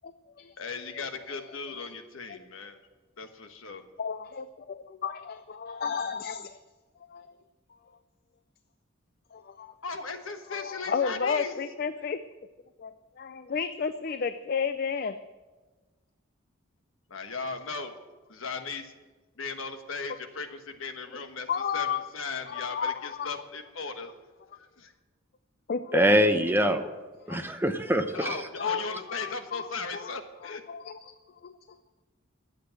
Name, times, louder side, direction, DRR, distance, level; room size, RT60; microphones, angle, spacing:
voice 1, 0.0-0.6 0.9-1.9 2.3-2.4 4.0-6.6 7.0-7.4 9.3-9.7 10.5-12.2 12.8-15.2 21.5-22.1 22.5-23.4 25.7-26.0 27.3-27.4 28.2-30.1 30.4-31.1 31.4-31.6, left 6 dB, 50° left, 11 dB, 0.4 m, -33 dB
voice 2, 0.6-2.8 3.2-3.9 9.8-11.5 17.1-17.9 18.3-18.9 19.4-21.5 21.7-24.1 24.6-24.9 28.1-30.6, left 4 dB, 85° left, 7 dB, 1.3 m, -37 dB
voice 3, 25.9-26.9 27.3-28.4, equal, 10° right, 7 dB, 0.7 m, -24 dB
11.5 x 8.1 x 7.6 m, 1.2 s
head